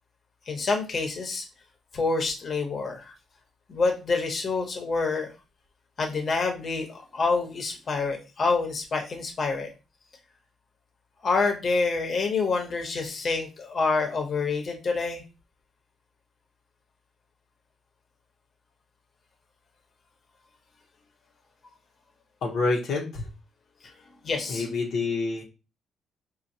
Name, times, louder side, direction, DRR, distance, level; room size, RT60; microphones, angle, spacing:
voice 1, 0.5-1.5 1.9-3.1 3.7-5.3 6.0-9.7 11.2-15.2 24.2-24.8, left 4 dB, 45° left, 3 dB, 0.9 m, -27 dB
voice 2, 22.4-23.3 24.5-25.4, left 3 dB, 75° left, -1 dB, 0.8 m, -27 dB
4.4 x 2.2 x 2.7 m, 0.30 s
cardioid pair, 90°, 0 cm